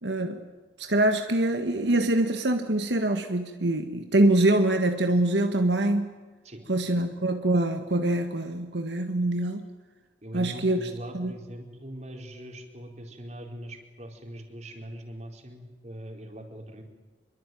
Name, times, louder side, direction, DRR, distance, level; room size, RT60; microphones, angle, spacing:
voice 1, 0.0-0.4 0.8-6.1 6.7-9.6 10.3-11.3, right 1 dB, 80° right, 6 dB, 1.8 m, -24 dB
voice 2, 10.2-16.8, equal, 40° right, 3 dB, 4.5 m, -41 dB
26.5 x 23.0 x 9.4 m, 1.3 s
head